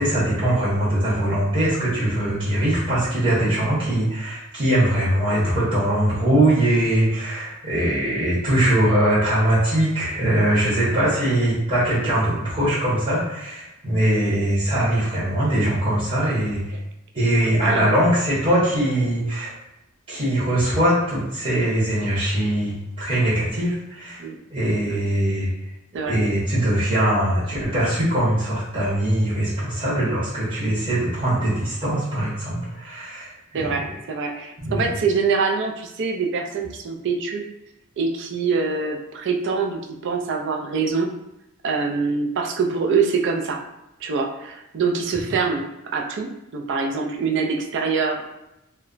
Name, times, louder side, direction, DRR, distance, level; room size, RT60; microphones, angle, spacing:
voice 1, 0.0-16.7 17.1-19.5 20.1-24.2 24.5-25.5 26.1-33.3 33.6-33.8 34.6-34.9, right 1 dB, 25° right, -9 dB, 0.9 m, -21 dB
voice 2, 17.6-17.9 24.2-24.3 24.9-25.0 25.9-26.2 33.5-37.4 38.0-41.1 41.6-43.6 44.0-48.3, right 5 dB, 60° right, 2 dB, 0.4 m, -24 dB
2.2 x 2.0 x 3.8 m, 0.89 s
head